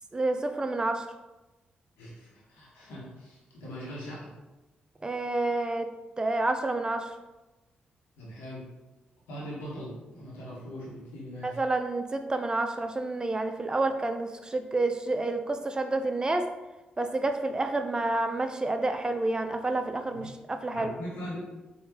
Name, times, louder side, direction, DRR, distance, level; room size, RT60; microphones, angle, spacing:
voice 1, 0.1-1.0 5.0-5.9 6.2-7.1 11.4-16.5 17.0-20.9, right 2 dB, 20° right, 7 dB, 0.4 m, -29 dB
voice 2, 2.0-4.3 8.2-8.6 9.3-11.6 20.1-20.3 20.7-21.4, equal, 90° left, -6 dB, 0.8 m, -41 dB
3.6 x 2.2 x 2.8 m, 1.1 s
supercardioid pair, 55°, 4 cm